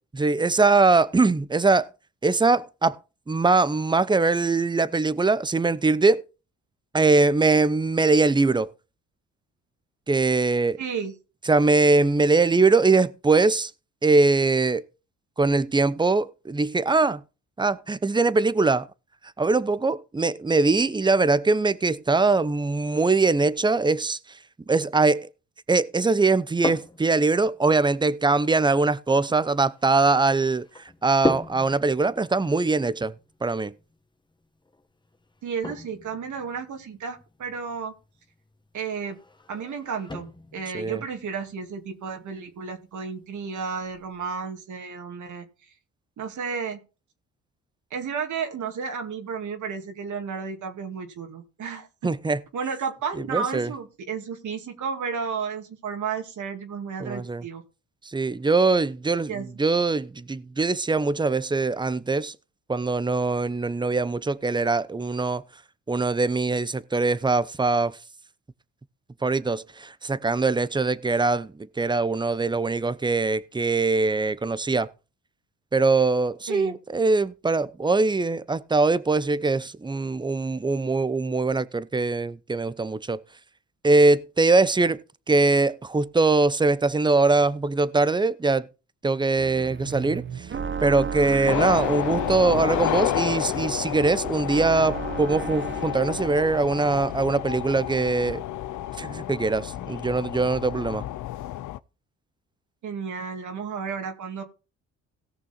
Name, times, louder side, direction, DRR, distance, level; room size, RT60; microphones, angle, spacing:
voice 1, 0.1-1.9 2.2-3.0 3.3-6.2 6.9-8.7 10.1-10.8 11.5-13.7 14.0-14.9 15.4-17.2 17.6-18.9 19.4-24.4 24.7-25.3 25.7-33.1 33.4-33.7 40.7-41.0 52.0-52.4 53.2-53.7 57.0-57.4 58.0-62.4 62.7-65.4 65.9-68.0 69.2-74.9 75.7-83.2 83.8-88.7 89.0-90.5 90.8-98.4 99.0-101.0, right 3 dB, 15° right, 0.7 m, -22 dB
voice 2, 10.8-11.1 35.4-37.9 38.7-39.2 39.5-40.3 40.5-45.5 46.2-46.8 47.9-52.1 52.5-57.6 59.3-59.5 76.5-76.8 102.8-104.4, right 6 dB, 65° right, 2.3 m, -32 dB
sound 1, 26.2-44.3, left 2 dB, 15° left, 1.3 m, -39 dB
sound 2, 89.4-96.4, right 6 dB, 35° right, 1.0 m, -34 dB
sound 3, 91.5-101.8, left 13 dB, 65° left, 0.6 m, -30 dB
17.0 x 6.1 x 4.3 m
supercardioid pair, 70°, 32 cm